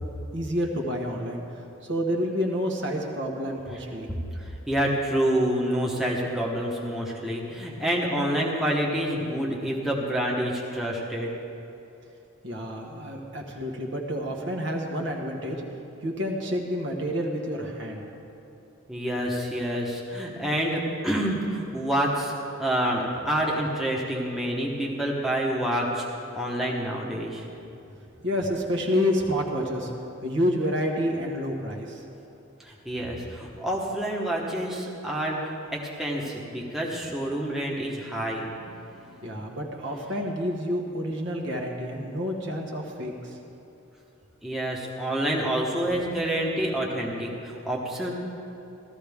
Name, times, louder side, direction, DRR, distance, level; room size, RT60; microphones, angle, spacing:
voice 1, 0.3-1.4 1.9-4.1 12.4-15.6 16.0-18.0 28.2-29.9 30.2-32.0 39.2-43.4, equal, 60° right, 1 dB, 1.4 m, -29 dB
voice 2, 4.4-11.3 18.9-22.3 22.6-26.0 26.3-27.4 32.6-39.3 44.4-48.1, right 1 dB, ahead, -3 dB, 1.1 m, -28 dB
15.0 x 13.5 x 3.5 m, 2.8 s
head